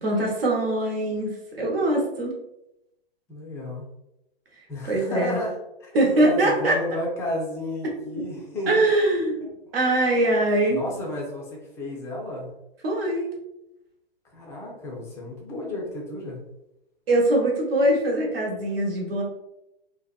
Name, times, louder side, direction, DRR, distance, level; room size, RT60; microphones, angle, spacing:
voice 1, 0.0-2.3 4.9-5.4 5.9-6.8 8.7-9.5 9.7-10.8 12.8-13.3 17.1-19.2, right 1 dB, 70° right, -1 dB, 0.9 m, -22 dB
voice 2, 3.3-3.9 4.7-8.8 10.2-10.4 10.7-12.5 14.3-16.4, left 1 dB, 10° left, -2 dB, 0.3 m, -32 dB
2.6 x 2.1 x 2.3 m, 0.87 s
hypercardioid pair, 120°, 30 cm